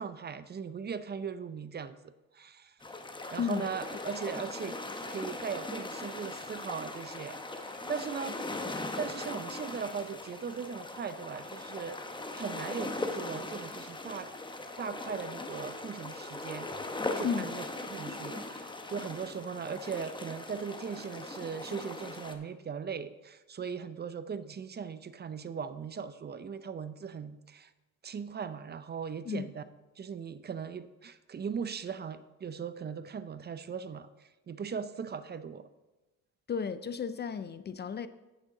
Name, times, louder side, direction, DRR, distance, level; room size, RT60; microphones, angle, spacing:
voice 1, 0.0-2.0 2.3-2.8 3.3-4.8 5.1-8.4 9.0-14.3 14.8-16.7 17.1-27.7 28.0-29.6 30.0-35.7, right 6 dB, 35° right, 0.5 m, -39 dB
sound 1, 2.8-22.4, left 2 dB, 15° left, 0.9 m, -39 dB
voice 2, 3.4-3.7 17.2-17.5 29.3-29.5 36.5-38.1, left 6 dB, 35° left, 0.4 m, -33 dB
8.9 x 6.2 x 4.8 m
cardioid pair, 90°, 30 cm